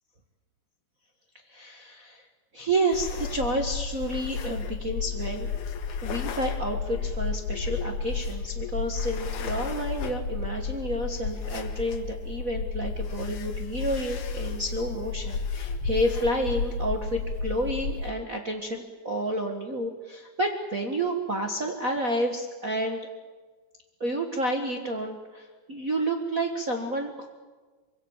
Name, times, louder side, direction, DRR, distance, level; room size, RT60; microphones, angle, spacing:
voice 1, 1.5-2.2 2.5-5.5 6.0-23.0 24.0-27.3, right 1 dB, 35° right, 2 dB, 1.5 m, -30 dB
sound 1, 2.9-18.1, left 5 dB, 85° left, 2.9 m, -32 dB
25.0 x 23.0 x 7.3 m, 1.4 s
omnidirectional pair, 3.4 m